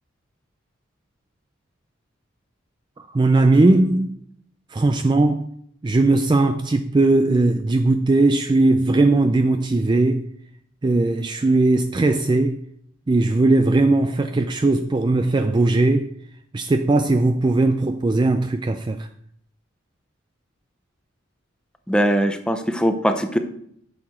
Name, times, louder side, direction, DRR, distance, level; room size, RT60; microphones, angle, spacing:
voice 1, 3.0-4.2 4.7-5.5 5.8-10.3 10.8-12.6 13.1-16.1 16.5-19.1, right 2 dB, 20° right, 0.3 m, -18 dB
voice 2, 21.9-23.4, equal, 5° left, 0.7 m, -21 dB
9.8 x 6.6 x 4.3 m
head